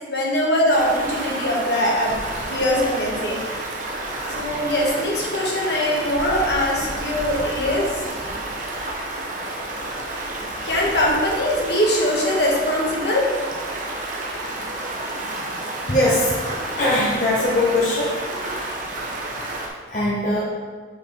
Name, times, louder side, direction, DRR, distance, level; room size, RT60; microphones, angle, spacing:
voice 1, 0.1-2.2 2.5-3.4 4.3-7.9 10.6-13.2, left 1 dB, 65° left, -3 dB, 1.4 m, -22 dB
Stream, 0.7-19.7, right 2 dB, 40° right, 0.9 m, -30 dB
voice 2, 15.9-16.4 16.8-18.2 19.9-20.4, left 1 dB, 45° left, -7 dB, 1.0 m, -20 dB
5.4 x 4.3 x 5.4 m, 1.5 s
head